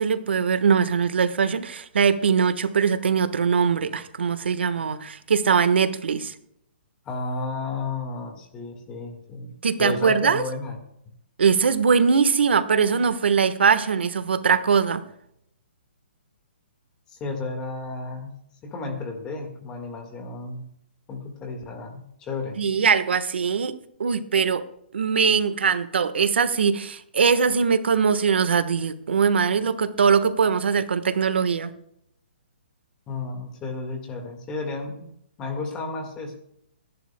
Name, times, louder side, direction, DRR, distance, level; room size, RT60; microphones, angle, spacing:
voice 1, 0.0-6.3 9.6-10.4 11.4-15.0 22.6-23.7 24.0-24.6 24.9-31.7, right 6 dB, 75° right, 11 dB, 1.3 m, -21 dB
voice 2, 7.0-9.5 9.8-10.8 17.1-18.3 18.6-20.6 21.1-22.6 33.1-35.0 35.4-36.4, left 3 dB, 10° left, 4 dB, 1.6 m, -32 dB
23.5 x 11.0 x 2.2 m, 0.72 s
hypercardioid pair, 175°, 6 cm